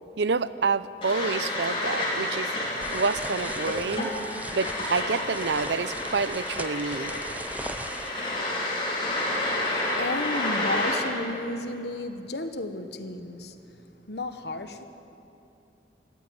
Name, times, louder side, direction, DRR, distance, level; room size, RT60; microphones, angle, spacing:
voice 1, 0.2-2.5 2.9-4.1 4.5-7.1, right 4 dB, 75° right, 15 dB, 0.6 m, -28 dB
sound 1, 1.0-10.9, left 1 dB, 30° left, 4.7 m, -30 dB
sound 2, 2.8-8.1, right 2 dB, 10° right, 0.6 m, -40 dB
voice 2, 9.4-13.6 14.1-14.9, left 2 dB, 65° left, 8 dB, 1.3 m, -33 dB
24.5 x 13.5 x 9.6 m, 2.8 s
head